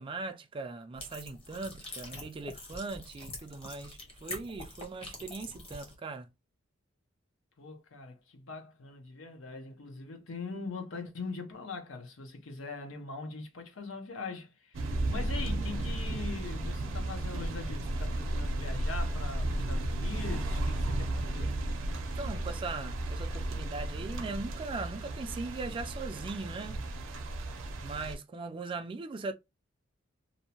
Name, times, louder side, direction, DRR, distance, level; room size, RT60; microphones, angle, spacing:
voice 1, 0.0-6.3 22.1-26.8 27.8-29.3, right 3 dB, 25° right, 0.3 m, -39 dB
sound 1, 0.9-6.0, left 2 dB, 30° left, 0.8 m, -45 dB
voice 2, 7.6-21.6, left 3 dB, 75° left, 0.7 m, -42 dB
sound 2, 14.7-28.2, right 1 dB, 90° right, 0.5 m, -34 dB
2.6 x 2.1 x 2.8 m
head